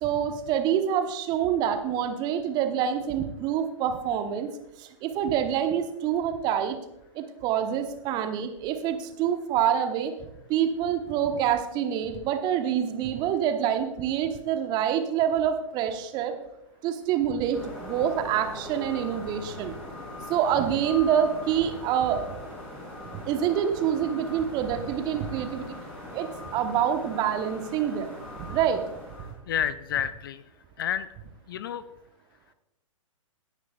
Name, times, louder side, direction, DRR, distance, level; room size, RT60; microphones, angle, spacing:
voice 1, 0.0-4.5 4.8-6.8 7.1-10.1 10.5-16.3 16.8-19.7 20.3-22.4 23.1-25.7 26.1-26.3 26.5-28.8, right 9 dB, 25° right, 7 dB, 1.0 m, -26 dB
sound 1, 17.5-29.3, left 1 dB, 5° left, 4.4 m, -41 dB
voice 2, 29.5-30.4 30.8-31.1 31.5-31.8, left 10 dB, 40° left, 15 dB, 0.5 m, -29 dB
17.5 x 9.6 x 2.4 m, 0.84 s
figure-of-eight pair, 115°, 17 cm